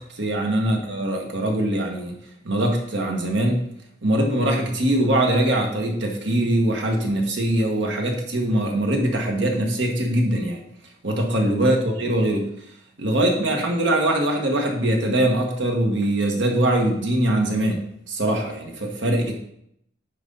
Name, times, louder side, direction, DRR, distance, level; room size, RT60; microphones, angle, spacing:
voice 1, 0.0-2.2 2.4-3.6 4.0-10.6 11.0-12.5 13.0-19.3, right 1 dB, 85° right, 2 dB, 1.6 m, -22 dB
9.3 x 5.3 x 4.0 m, 0.73 s
head